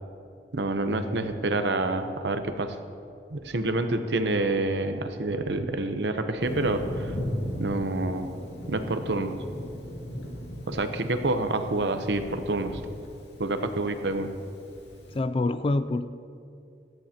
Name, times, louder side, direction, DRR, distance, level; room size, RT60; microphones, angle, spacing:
voice 1, 0.5-2.8 3.3-7.2 7.6-8.3 8.7-9.4 10.7-12.8 13.4-14.3, right 2 dB, 75° right, 8 dB, 0.8 m, -27 dB
Thunder, 6.4-15.2, equal, 80° left, 2.2 m, -38 dB
voice 2, 15.1-16.1, left 2 dB, 30° left, 13 dB, 0.3 m, -27 dB
17.5 x 13.5 x 2.9 m, 2.6 s
head